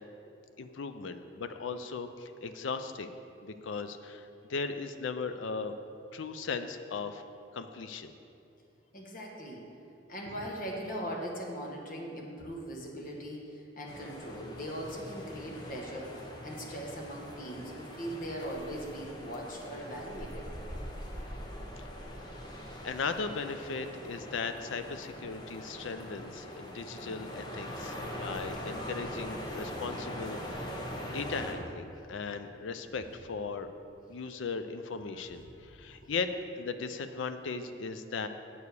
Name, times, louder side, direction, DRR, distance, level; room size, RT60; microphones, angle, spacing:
voice 1, 0.6-3.1 3.4-5.8 6.1-7.2 7.5-8.1 22.1-22.2 22.8-30.8 31.0-33.7 34.1-38.3, left 4 dB, 75° left, 9 dB, 0.5 m, -37 dB
voice 2, 8.9-9.7 10.1-20.5 36.0-36.1, equal, 45° left, -1 dB, 1.2 m, -40 dB
sound 1, 13.9-31.5, equal, 20° left, 0.8 m, -42 dB
8.3 x 4.7 x 6.8 m, 2.7 s
head